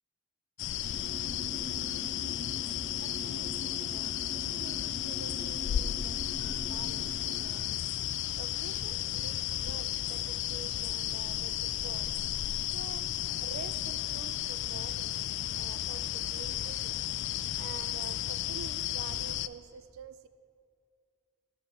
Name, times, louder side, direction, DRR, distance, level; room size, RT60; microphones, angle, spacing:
sound 1, 0.6-19.5, left 12 dB, 60° left, 0.3 m, -34 dB
sound 2, 0.8-7.4, left 1 dB, 45° left, 1.0 m, -44 dB
voice 1, 3.0-12.1 12.6-13.1 13.4-15.2 15.5-17.0 17.6-20.3, right 6 dB, 85° right, 12 dB, 0.4 m, -48 dB
11.0 x 8.2 x 4.3 m, 2.3 s
head